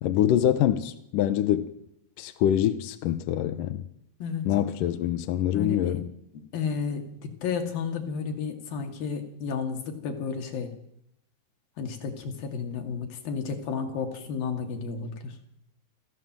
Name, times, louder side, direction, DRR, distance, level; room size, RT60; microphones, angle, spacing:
voice 1, 0.0-1.7 2.2-3.8 4.5-6.0, left 11 dB, 75° left, 2.0 m, -25 dB
voice 2, 5.5-6.1 6.5-10.7 11.8-15.4, left 6 dB, 60° left, 3.9 m, -32 dB
26.5 x 15.0 x 7.6 m
omnidirectional pair, 5.0 m